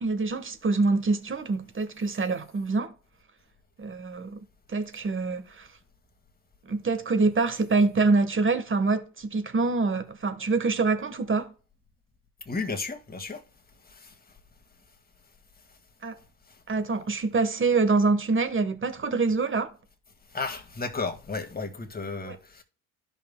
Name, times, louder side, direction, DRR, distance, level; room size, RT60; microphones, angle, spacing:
voice 1, 0.0-2.9 3.8-4.4 4.7-5.7 6.7-11.5 16.0-16.2 16.7-19.7 22.2-22.3, right 3 dB, 30° right, 1.3 m, -25 dB
voice 2, 12.5-13.4 13.8-14.4 16.2-16.6 20.3-22.6, left 4 dB, 20° left, 1.9 m, -34 dB
13.5 x 5.6 x 2.2 m
hypercardioid pair, 60°, 43 cm